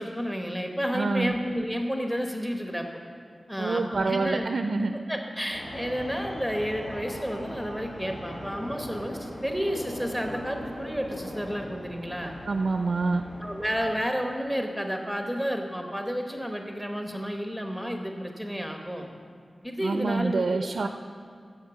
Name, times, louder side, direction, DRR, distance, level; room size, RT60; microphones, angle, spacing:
voice 1, 0.0-3.0 3.5-4.4 5.1-12.3 13.4-19.1 19.6-20.7, equal, 5° left, 3 dB, 1.1 m, -31 dB
voice 2, 0.9-1.3 3.6-5.0 12.5-13.2 19.8-20.9, right 3 dB, 80° right, 7 dB, 0.4 m, -27 dB
sound 1, 5.5-13.9, left 1 dB, 85° left, 2.0 m, -39 dB
10.0 x 7.0 x 7.0 m, 2.1 s
wide cardioid pair, 85°, 0 cm